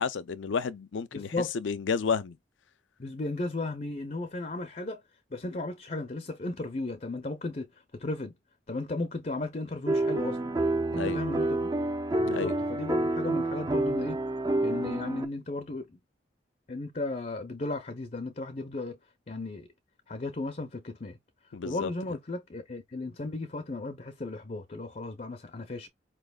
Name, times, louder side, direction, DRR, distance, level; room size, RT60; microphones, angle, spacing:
voice 1, 0.0-2.4 11.0-11.2 12.3-12.6 21.5-21.9, left 5 dB, 90° left, 0.5 m, -31 dB
voice 2, 1.1-1.5 3.0-5.0 5.3-7.7 7.9-8.3 8.7-10.5 10.9-11.7 12.2-14.2 14.6-16.0 16.7-19.0 19.3-19.7 20.1-21.2 21.6-25.9, left 2 dB, 40° left, 0.6 m, -35 dB
sound 1, 9.8-15.3, right 2 dB, 20° right, 0.5 m, -28 dB
4.9 x 2.9 x 2.2 m
head